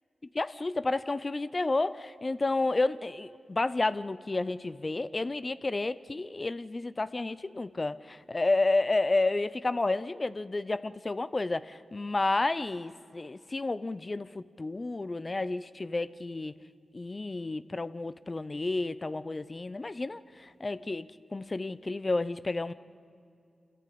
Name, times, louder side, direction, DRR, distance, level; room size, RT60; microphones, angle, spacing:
voice 1, 0.3-16.5 16.9-22.7, left 2 dB, 40° left, 15 dB, 0.6 m, -31 dB
26.5 x 14.5 x 8.6 m, 2.4 s
cardioid pair, 45°, 0 cm